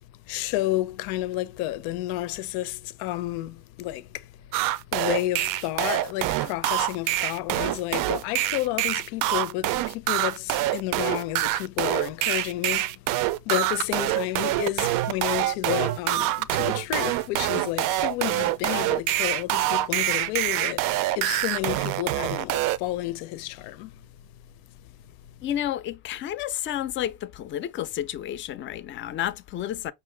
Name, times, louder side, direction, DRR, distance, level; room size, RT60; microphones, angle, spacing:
voice 1, 0.3-4.2 4.9-12.9 13.5-20.9 21.2-23.9, left 15 dB, 80° left, 0.6 m, -31 dB
sound 1, 4.5-22.8, right 15 dB, 60° right, 0.5 m, -25 dB
voice 2, 25.4-29.9, left 11 dB, 35° left, 0.4 m, -31 dB
5.7 x 2.5 x 3.2 m
cardioid pair, 135°, 36 cm